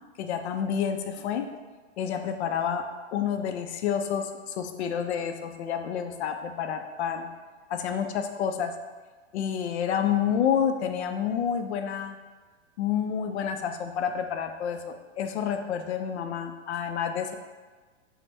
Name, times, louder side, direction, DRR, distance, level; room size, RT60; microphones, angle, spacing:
voice 1, 0.2-1.5 2.0-2.8 3.1-7.3 7.7-8.7 9.3-12.2 12.8-17.3, left 8 dB, 60° left, 6 dB, 0.5 m, -29 dB
4.3 x 2.1 x 3.2 m, 1.3 s
hypercardioid pair, 150°, 37 cm